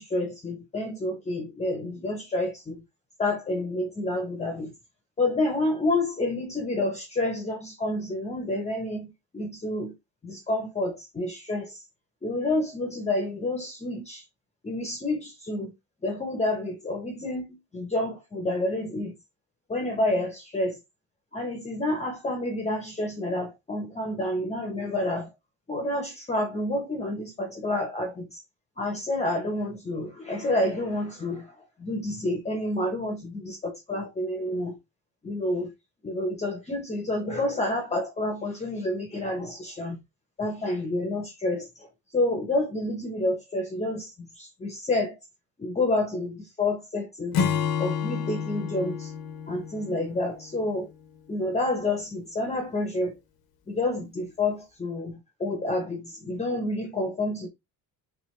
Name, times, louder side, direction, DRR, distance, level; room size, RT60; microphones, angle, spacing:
voice 1, 0.0-2.8 3.2-4.7 5.2-9.9 10.2-11.8 12.2-14.2 14.6-15.7 16.0-19.1 19.7-20.8 21.3-25.3 25.7-28.4 28.8-34.8 35.2-35.7 36.0-40.0 40.4-41.9 42.1-45.2 45.6-47.4 47.8-49.1 49.5-50.9 51.3-53.2 53.7-57.5, left 2 dB, 20° left, 0.7 m, -29 dB
Acoustic guitar / Strum, 47.3-50.8, left 7 dB, 90° left, 0.8 m, -30 dB
3.3 x 3.2 x 3.1 m
cardioid pair, 155°, 36 cm